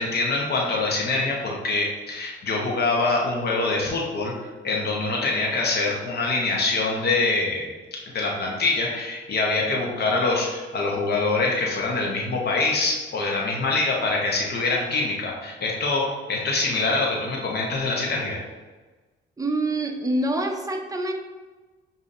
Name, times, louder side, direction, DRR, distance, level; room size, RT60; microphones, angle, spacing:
voice 1, 0.0-4.3 4.6-18.4, left 3 dB, 55° left, -2 dB, 0.8 m, -24 dB
voice 2, 19.4-21.1, right 1 dB, 15° right, 3 dB, 0.6 m, -26 dB
6.9 x 2.7 x 2.5 m, 1.3 s
cardioid pair, 90°, 20 cm